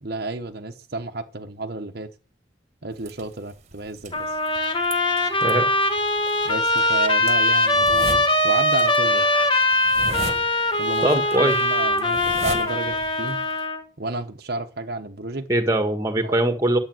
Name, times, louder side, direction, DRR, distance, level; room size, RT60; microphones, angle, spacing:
voice 1, 0.0-2.1 2.8-4.4 6.4-8.1 8.4-9.3 10.8-13.4 14.0-15.5 16.1-16.4, right 2 dB, 50° right, 5 dB, 1.1 m, -31 dB
sound 1, 2.9-13.6, right 3 dB, 35° right, 1.6 m, -38 dB
Trumpet, 4.1-13.8, left 1 dB, 25° left, 2.0 m, -21 dB
voice 2, 11.0-11.6 15.5-16.8, right 1 dB, 15° right, 7 dB, 1.7 m, -21 dB
11.5 x 8.3 x 7.8 m, 0.34 s
head